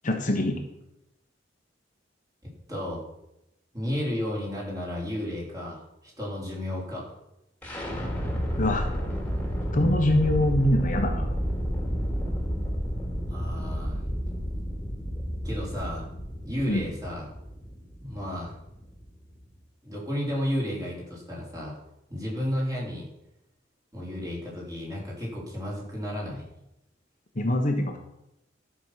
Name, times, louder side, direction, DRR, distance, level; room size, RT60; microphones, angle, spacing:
voice 1, 0.0-0.6 8.6-8.9 9.7-11.3 16.7-16.8 27.4-28.0, left 1 dB, 45° left, 3 dB, 1.2 m, -24 dB
voice 2, 2.4-3.1 3.7-7.2 13.3-14.0 15.4-16.1 16.4-17.3 18.0-18.6 19.8-21.8 22.1-23.1 23.9-26.5, equal, 20° right, -4 dB, 4.0 m, -32 dB
sound 1, 7.6-19.5, equal, 10° left, 2.5 m, -31 dB
12.5 x 6.3 x 5.9 m, 0.86 s
head